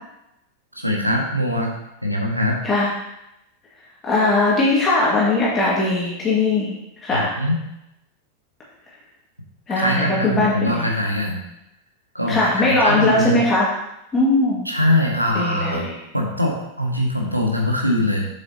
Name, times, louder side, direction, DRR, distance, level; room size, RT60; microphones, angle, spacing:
voice 1, 0.8-1.7 2.0-2.6 7.1-7.6 9.8-11.4 12.1-13.4 14.6-15.9 16.1-18.3, left 1 dB, 90° right, 0 dB, 1.4 m, -22 dB
voice 2, 4.0-6.7 7.0-7.3 9.7-10.9 12.3-13.7 14.1-14.7 15.3-15.9, left 2 dB, 20° left, -6 dB, 1.9 m, -19 dB
8.0 x 7.2 x 2.9 m, 0.88 s
figure-of-eight pair, 90°, 0 cm